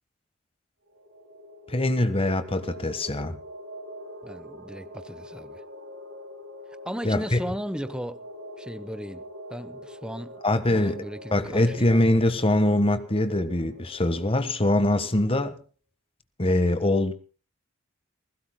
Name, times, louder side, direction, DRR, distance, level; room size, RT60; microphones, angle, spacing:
sound 1, 0.8-15.2, equal, 65° right, 5.9 m, -44 dB
voice 1, 1.7-3.4 7.0-7.4 10.4-11.0 11.3-15.5 16.4-17.1, left 1 dB, 25° left, 1.4 m, -23 dB
voice 2, 4.2-5.6 6.8-8.2 8.6-9.2 9.5-10.3 10.7-11.9, equal, 5° right, 0.8 m, -36 dB
29.0 x 16.0 x 2.2 m
head